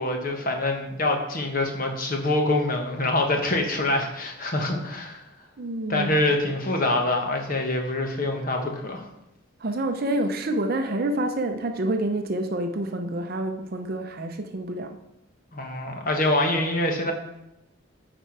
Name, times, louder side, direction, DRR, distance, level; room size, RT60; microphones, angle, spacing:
voice 1, 0.0-5.2 5.9-9.1 15.5-17.1, left 2 dB, 40° left, 3 dB, 1.2 m, -25 dB
voice 2, 5.6-6.1 9.6-15.0, right 1 dB, 45° right, 6 dB, 0.5 m, -28 dB
8.9 x 4.5 x 4.6 m, 0.87 s
head